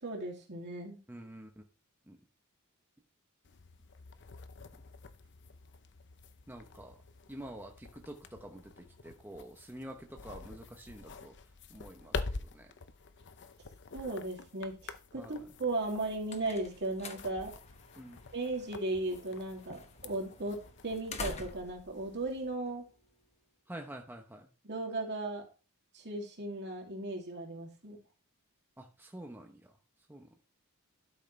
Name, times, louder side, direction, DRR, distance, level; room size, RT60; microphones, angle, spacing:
voice 1, 0.0-1.0 13.9-17.5 18.3-22.8 24.6-25.4 25.9-28.0, right 2 dB, 50° right, 1 dB, 2.7 m, -36 dB
voice 2, 1.1-1.6 2.1-2.2 6.5-7.0 7.3-11.3 11.7-12.7 15.1-15.5 18.0-18.2 23.7-24.5 28.8-29.7 30.1-30.3, right 1 dB, 10° right, 2 dB, 0.9 m, -48 dB
sound 1, 3.4-22.6, left 4 dB, 55° left, 0.7 m, -47 dB
sound 2, 15.8-23.3, left 4 dB, 30° left, 1.1 m, -48 dB
12.0 x 6.4 x 3.3 m, 0.33 s
head